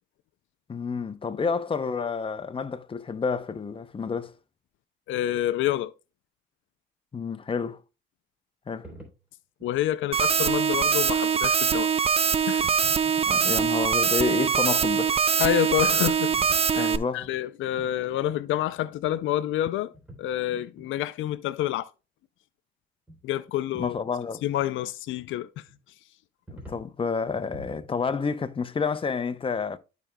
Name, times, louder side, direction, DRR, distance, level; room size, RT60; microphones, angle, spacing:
voice 1, 0.7-4.3 7.1-7.8 8.7-8.9 13.0-15.3 16.8-17.3 23.8-24.4 26.5-29.8, left 5 dB, 25° left, 0.7 m, -29 dB
voice 2, 5.1-5.9 9.6-11.9 12.5-12.7 15.4-16.3 16.7-21.9 23.2-24.0 24.4-25.6, left 12 dB, 80° left, 0.5 m, -28 dB
sound 1, 8.8-9.2 9.6-9.8 10.3-10.5 10.9-11.2 11.7-11.9 12.2-12.3 12.6-13.7 15.8-16.9 17.2-17.4 17.8-17.9 18.2-18.4 18.7-18.8 19.0-19.1 19.9-20.2 20.5-20.9 23.1-23.2 23.5-24.0 25.7-25.8 26.5-26.9 27.3-28.2, equal, 5° right, 3.3 m, -46 dB
sound 2, 10.1-17.0, right 6 dB, 30° right, 0.5 m, -23 dB
14.0 x 5.1 x 2.2 m
cardioid pair, 90°, 20 cm